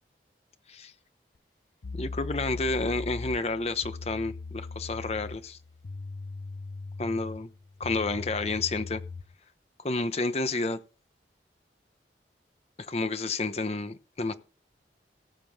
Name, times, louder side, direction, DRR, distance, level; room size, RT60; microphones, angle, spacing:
sound 1, 1.3-1.4 1.8-9.3, left 3 dB, 90° left, 0.7 m, -39 dB
voice 1, 1.9-5.6 7.0-7.5 7.8-9.0 9.8-10.8 12.9-14.3, left 3 dB, 35° left, 0.9 m, -30 dB
18.0 x 7.6 x 3.6 m
head